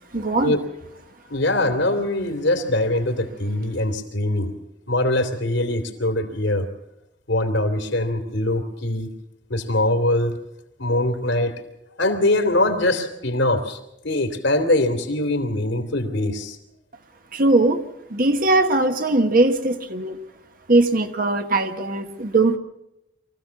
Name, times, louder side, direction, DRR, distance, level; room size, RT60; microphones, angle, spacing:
voice 1, 0.1-0.6 17.3-17.8 18.1-20.2 20.7-22.6, right 2 dB, 50° right, 7 dB, 1.4 m, -20 dB
voice 2, 1.3-4.5 4.9-6.7 7.3-9.1 9.5-10.4 10.8-11.6 12.0-16.6, left 1 dB, 75° left, 6 dB, 2.8 m, -22 dB
24.0 x 15.0 x 7.1 m, 0.87 s
head